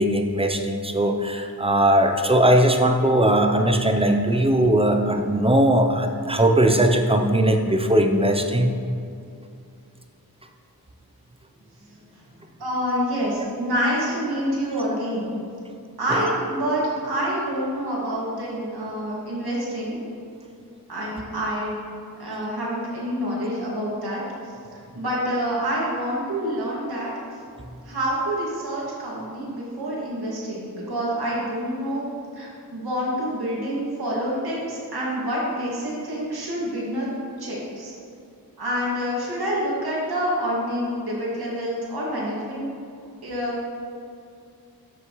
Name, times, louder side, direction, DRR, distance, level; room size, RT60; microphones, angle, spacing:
voice 1, 0.0-8.7, right 1 dB, 15° right, 4 dB, 0.6 m, -19 dB
voice 2, 11.9-12.2 12.6-15.3 16.0-20.0 20.9-21.8 22.2-24.2 24.7-27.1 27.8-32.0 32.3-37.1 37.4-37.9 38.6-42.7 43.2-43.7, equal, 75° right, -6 dB, 2.2 m, -27 dB
12.5 x 6.2 x 3.1 m, 2.4 s
wide cardioid pair, 110°, 38 cm